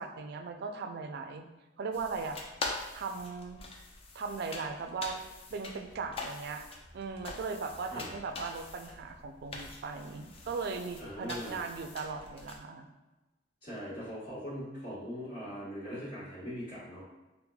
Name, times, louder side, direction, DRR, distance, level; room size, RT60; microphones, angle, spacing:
voice 1, 0.0-1.5 1.8-2.4 2.9-3.6 4.1-5.2 5.5-6.6 6.9-12.9, right 4 dB, 60° right, 6 dB, 0.3 m, -38 dB
sound 1, 1.9-12.6, left 3 dB, 30° left, 0.4 m, -44 dB
voice 2, 11.0-11.6 13.6-17.0, equal, 50° left, -12 dB, 1.3 m, -41 dB
5.5 x 2.1 x 2.2 m, 1.1 s
head